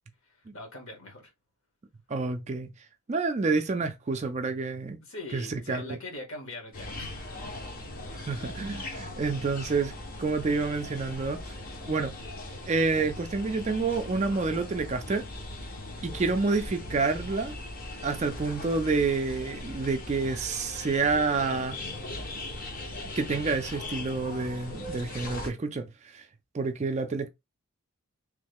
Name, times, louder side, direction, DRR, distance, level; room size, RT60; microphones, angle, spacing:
voice 1, 0.2-1.3 5.0-7.5, left 2 dB, 65° left, 1.2 m, -42 dB
voice 2, 2.1-2.7 3.1-5.0 5.3-6.0 8.1-11.4 11.8-12.1 12.7-15.2 16.0-17.6 18.0-21.8 23.2-26.2 26.5-27.3, right 4 dB, 30° right, 0.3 m, -28 dB
sound 1, 6.7-25.5, left 1 dB, 40° left, 0.6 m, -39 dB
3.1 x 2.2 x 3.4 m
head